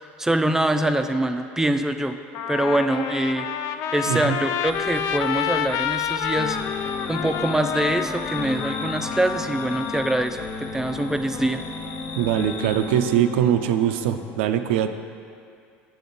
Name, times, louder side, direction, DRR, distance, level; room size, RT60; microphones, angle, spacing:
voice 1, 0.2-2.2 2.5-3.5 3.9-6.6 7.1-11.6, right 1 dB, 10° right, 8 dB, 0.4 m, -24 dB
Trumpet, 1.6-1.7 2.3-10.3, left 8 dB, 65° left, 0.3 m, -29 dB
voice 2, 4.1-4.4 12.1-14.9, right 10 dB, 80° right, 9 dB, 0.4 m, -22 dB
sound 1, 4.7-13.2, left 4 dB, 30° left, 1.3 m, -41 dB
sound 2, 6.4-14.4, left 4 dB, 45° left, 0.8 m, -35 dB
7.5 x 6.8 x 4.0 m, 2.3 s
hypercardioid pair, 85°, 6 cm